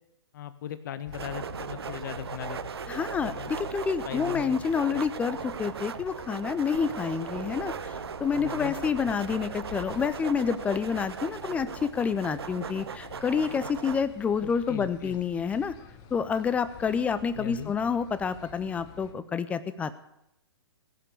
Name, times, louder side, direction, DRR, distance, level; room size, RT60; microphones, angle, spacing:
voice 1, 0.3-2.6 3.2-3.5 4.0-4.6 8.3-8.7 14.4-15.2 17.3-17.7, left 10 dB, 45° left, 14 dB, 0.8 m, -38 dB
sound 1, 1.1-19.1, left 6 dB, 25° left, 1.1 m, -47 dB
sound 2, 1.1-14.0, right 7 dB, 70° right, 0.5 m, -38 dB
voice 2, 2.9-15.7 16.1-20.0, left 6 dB, 10° left, 14 dB, 0.4 m, -28 dB
16.0 x 6.6 x 8.5 m, 0.83 s
figure-of-eight pair, 120°, 14 cm